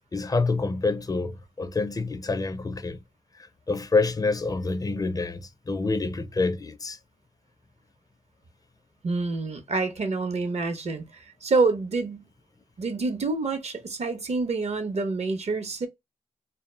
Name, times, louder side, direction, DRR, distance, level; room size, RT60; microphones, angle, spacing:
voice 1, 0.1-3.0 3.7-5.4 5.7-7.0, left 3 dB, 30° left, 0.4 m, -27 dB
voice 2, 9.0-12.3 12.8-15.9, right 3 dB, 55° right, 0.7 m, -27 dB
2.1 x 2.0 x 3.1 m
cardioid pair, 60°, 13 cm